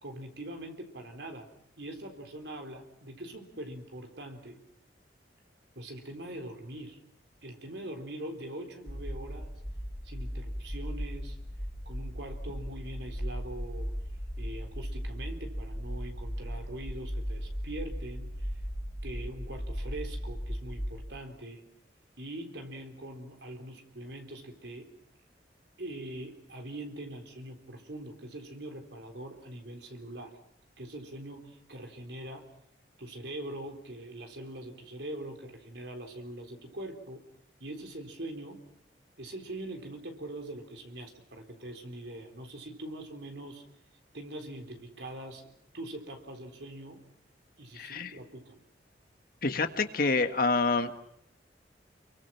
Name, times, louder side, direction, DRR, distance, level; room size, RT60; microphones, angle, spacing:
voice 1, 0.0-1.5 1.8-4.6 5.8-7.0 7.4-9.5 10.0-11.4 11.9-13.9 14.4-18.6 19.0-21.6 22.2-24.9 25.8-30.3 30.8-32.5 33.0-37.2 37.6-38.6 39.2-43.6 44.1-45.5 45.7-47.0 47.6-48.6, right 1 dB, 70° right, 5 dB, 4.0 m, -42 dB
sound 1, 8.9-21.0, equal, 20° left, 3.3 m, -37 dB
voice 2, 47.7-48.1 49.4-50.9, left 3 dB, 55° left, 7 dB, 1.7 m, -27 dB
29.0 x 23.5 x 6.0 m, 0.75 s
head